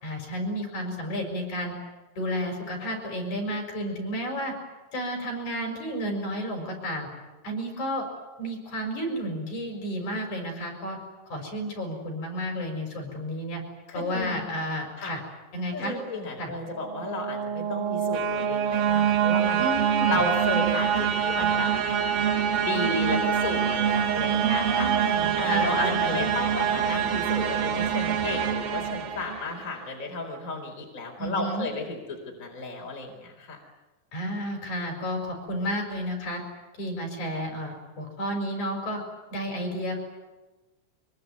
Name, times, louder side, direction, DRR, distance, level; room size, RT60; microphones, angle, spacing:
voice 1, 0.0-1.8 2.2-4.5 4.9-7.1 7.4-8.1 8.4-11.0 11.3-13.6 13.9-15.2 15.5-16.0 16.4-16.5 19.6-20.2 24.3-26.3 31.2-31.7 34.1-36.4 36.8-39.0 39.3-40.0, equal, 50° left, 3 dB, 7.6 m, -31 dB
voice 2, 13.9-14.5 15.0-15.1 15.7-19.7 20.1-21.7 22.6-33.6, left 2 dB, 20° left, 1 dB, 4.6 m, -33 dB
sound 1, 16.7-29.7, right 8 dB, 75° right, 3.7 m, -25 dB
24.5 x 23.5 x 9.6 m, 1.2 s
omnidirectional pair, 4.3 m